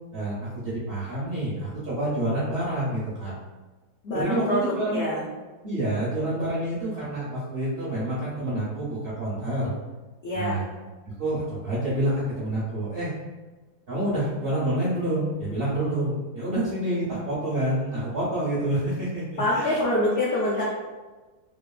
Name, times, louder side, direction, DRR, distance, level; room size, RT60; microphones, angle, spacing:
voice 1, 0.1-3.3 4.1-5.0 5.6-9.7 10.3-10.6 11.2-13.1 13.9-19.8, right 1 dB, 65° right, -9 dB, 0.6 m, -28 dB
voice 2, 4.0-5.2 10.2-10.7 19.4-20.6, left 1 dB, 75° left, -7 dB, 0.6 m, -25 dB
2.9 x 2.3 x 2.3 m, 1.2 s
omnidirectional pair, 1.8 m